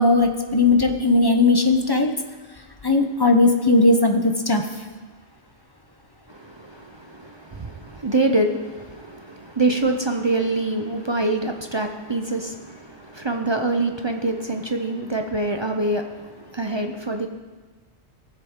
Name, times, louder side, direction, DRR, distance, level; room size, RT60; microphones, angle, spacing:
voice 1, 0.0-2.1 2.8-4.6, left 2 dB, 25° left, 5 dB, 0.6 m, -18 dB
voice 2, 6.3-17.3, right 2 dB, 35° right, 4 dB, 0.5 m, -25 dB
17.0 x 7.3 x 3.7 m, 1.3 s
omnidirectional pair, 1.2 m